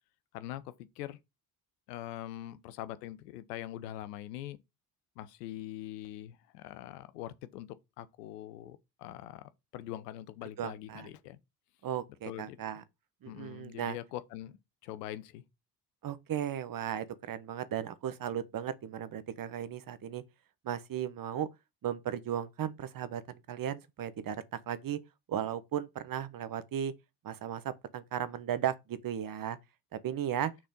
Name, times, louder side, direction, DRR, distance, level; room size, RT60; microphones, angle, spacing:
voice 1, 0.3-1.2 1.9-4.6 5.2-7.7 8.0-11.4 12.3-12.6 13.3-15.4, left 13 dB, 85° left, 0.8 m, -43 dB
voice 2, 10.6-11.1 11.8-12.8 13.2-14.0 16.0-20.2 20.6-21.5 21.8-25.0 25.3-26.9 27.2-29.6 29.9-30.5, right 9 dB, 45° right, 1.2 m, -36 dB
6.3 x 4.2 x 5.3 m
hypercardioid pair, 55°, 46 cm